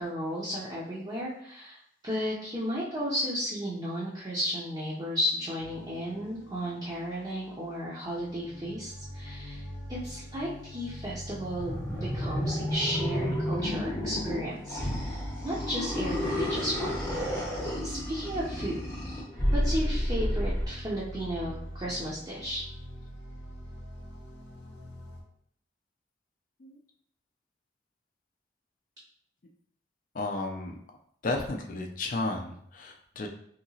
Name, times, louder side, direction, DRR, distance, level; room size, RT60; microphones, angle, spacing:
voice 1, 0.0-16.9 17.8-18.8 19.5-22.6, equal, 25° right, -7 dB, 0.6 m, -34 dB
sound 1, 5.6-25.2, equal, 80° left, 0.7 m, -44 dB
sound 2, 11.6-20.6, equal, 15° left, 0.7 m, -31 dB
voice 2, 30.1-30.8 31.2-33.3, left 2 dB, 50° left, 2 dB, 0.4 m, -33 dB
2.8 x 2.8 x 2.7 m, 0.66 s
head